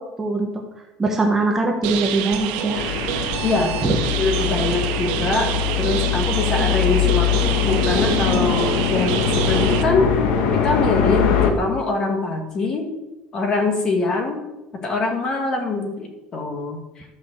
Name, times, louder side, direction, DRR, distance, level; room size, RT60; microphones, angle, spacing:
voice 1, 1.0-2.8 3.8-4.0, right 2 dB, 10° right, 0 dB, 1.2 m, -21 dB
sound 1, 1.8-9.8, right 10 dB, 75° right, 1.4 m, -27 dB
sound 2, 2.7-11.5, left 8 dB, 60° left, 1.5 m, -22 dB
voice 2, 3.4-3.8 4.2-10.1 10.5-12.9 13.3-14.4 14.8-17.0, left 3 dB, 25° left, 4 dB, 1.8 m, -23 dB
12.0 x 6.2 x 7.2 m, 1.0 s
cardioid pair, 175°, 3 cm